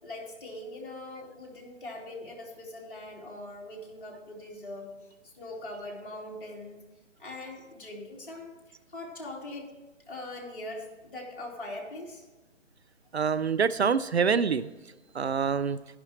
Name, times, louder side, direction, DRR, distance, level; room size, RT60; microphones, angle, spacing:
voice 1, 0.0-4.9 5.2-6.8 7.2-8.5 8.9-9.7 10.1-12.2, left 1 dB, 45° left, -2 dB, 3.0 m, -41 dB
voice 2, 13.1-14.7 15.1-15.8, right 6 dB, 55° right, 15 dB, 0.5 m, -25 dB
11.5 x 11.0 x 3.1 m, 1.2 s
figure-of-eight pair, 160°, 38 cm